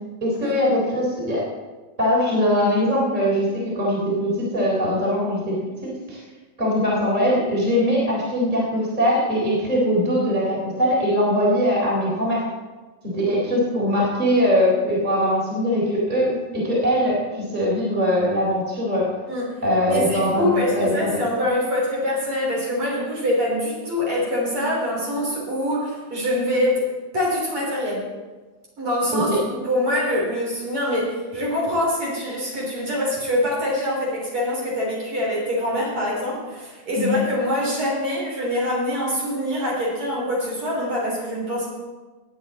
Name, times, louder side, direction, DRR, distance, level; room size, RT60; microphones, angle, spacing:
voice 1, 0.2-1.4 2.0-6.2 6.6-12.5 13.0-19.1 19.6-21.1 29.1-29.4 36.9-37.2, equal, 15° right, -4 dB, 3.7 m, -21 dB
voice 2, 19.9-26.8 27.1-28.1 28.8-41.7, left 1 dB, 45° right, -4 dB, 4.4 m, -24 dB
19.0 x 8.7 x 4.2 m, 1.3 s
omnidirectional pair, 3.4 m